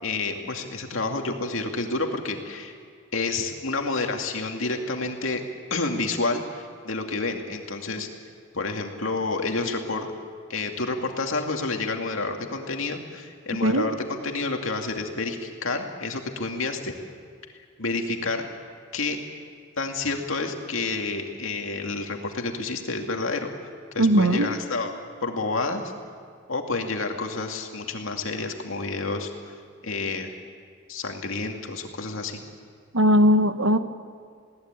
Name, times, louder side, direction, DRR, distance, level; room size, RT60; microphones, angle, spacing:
voice 1, 0.0-2.8 3.1-5.4 5.7-8.1 8.5-10.1 10.5-16.9 17.8-18.4 18.9-19.2 19.8-23.5 23.9-24.9 25.2-25.9 26.5-29.5 29.8-30.3 30.9-32.4, left 3 dB, 80° left, 3 dB, 2.3 m, -29 dB
voice 2, 24.0-24.5 32.9-33.8, equal, 75° right, 9 dB, 1.3 m, -19 dB
21.0 x 17.5 x 9.0 m, 2.2 s
head